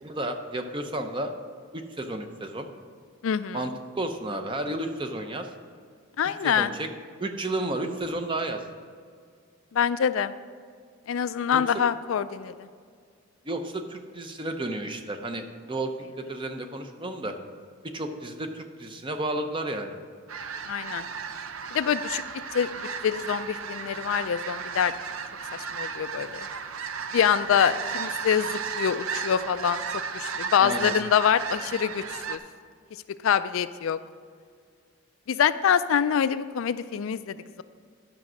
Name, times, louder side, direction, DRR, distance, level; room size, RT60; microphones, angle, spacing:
voice 1, 0.0-1.3 1.7-2.7 3.5-5.5 6.4-6.9 7.2-8.6 11.5-11.6 13.5-17.3 17.9-20.0 30.6-30.9, right 1 dB, 20° right, 6 dB, 0.6 m, -32 dB
voice 2, 3.2-3.7 6.2-6.7 9.7-10.3 11.1-12.7 20.7-21.1 21.7-22.2 22.5-22.7 23.0-24.9 25.5-26.5 27.1-29.8 30.1-32.4 33.2-34.0 35.3-37.6, left 8 dB, 70° left, 13 dB, 0.3 m, -25 dB
sound 1, 20.3-32.4, right 6 dB, 70° right, 0.5 m, -34 dB
10.5 x 6.1 x 6.1 m, 2.1 s
head